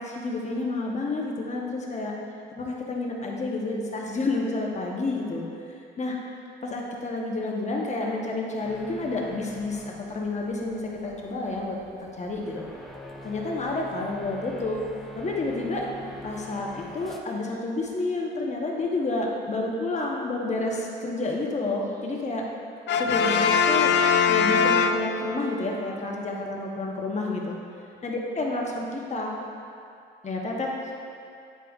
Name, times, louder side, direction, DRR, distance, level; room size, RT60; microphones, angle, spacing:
voice 1, 0.0-2.1 2.5-5.4 6.0-6.2 6.6-9.8 10.1-11.8 12.2-12.6 13.2-14.8 15.2-15.8 16.2-22.4 22.9-24.0 24.3-27.6 28.0-29.4 30.2-30.7, left 2 dB, 35° left, -1 dB, 1.0 m, -29 dB
sound 1, 8.6-17.2, left 1 dB, ahead, 0.6 m, -44 dB
Brass instrument, 22.9-25.5, left 6 dB, 65° left, 0.4 m, -22 dB
8.7 x 4.9 x 2.4 m, 2.5 s
cardioid pair, 90°, 20 cm